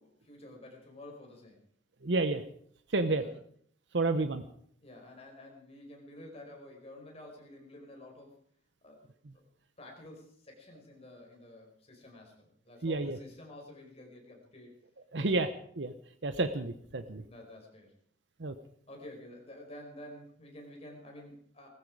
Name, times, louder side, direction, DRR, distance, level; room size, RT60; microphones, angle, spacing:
voice 1, 0.0-1.6 2.9-3.3 4.8-8.4 8.8-9.0 9.8-14.7 15.1-15.4 17.3-17.9 18.9-21.7, left 1 dB, 35° left, 1 dB, 5.0 m, -50 dB
voice 2, 2.0-2.4 2.9-3.2 3.9-4.4 12.8-13.2 15.1-15.5 15.8-15.9 16.2-17.2 18.4-18.5, right 2 dB, 75° right, 10 dB, 0.9 m, -30 dB
19.0 x 15.0 x 4.8 m, 0.62 s
head